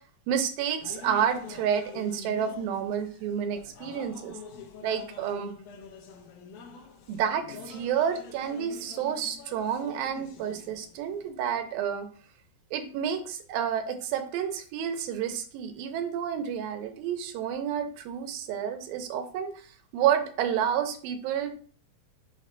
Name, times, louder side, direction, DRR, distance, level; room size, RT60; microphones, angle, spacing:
voice 1, 0.3-4.4 4.8-5.5 7.1-12.1 12.7-19.7 19.9-21.5, right 8 dB, 85° right, 7 dB, 2.6 m, -30 dB
sound 1, 0.8-11.3, left 5 dB, 90° left, 2.6 m, -46 dB
6.3 x 3.2 x 5.2 m, 0.44 s
omnidirectional pair, 4.1 m